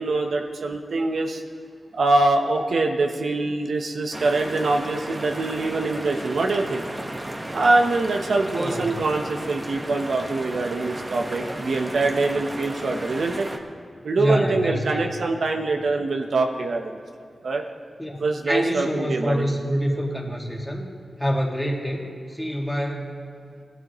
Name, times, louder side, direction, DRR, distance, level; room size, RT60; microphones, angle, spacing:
voice 1, 0.0-1.4 2.0-6.8 7.5-13.5 14.0-17.0 17.4-17.6 18.2-19.5, right 3 dB, 75° right, 3 dB, 1.0 m, -24 dB
sound 1, 4.1-13.6, right 1 dB, 30° right, 1.3 m, -34 dB
voice 2, 8.6-9.0 14.2-15.0 18.0-20.9 21.2-23.1, equal, 5° left, -2 dB, 2.2 m, -26 dB
19.5 x 12.5 x 3.1 m, 2.2 s
wide cardioid pair, 75°, 0 cm